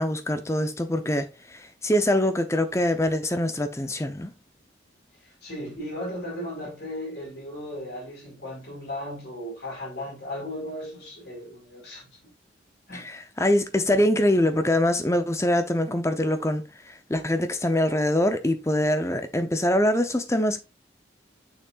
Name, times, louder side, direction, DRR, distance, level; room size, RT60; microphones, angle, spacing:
voice 1, 0.0-4.3 12.9-20.6, left 1 dB, 15° left, 0.7 m, -24 dB
voice 2, 5.4-12.3 12.9-13.1, left 1 dB, 65° left, 4.5 m, -36 dB
6.8 x 6.0 x 2.5 m
head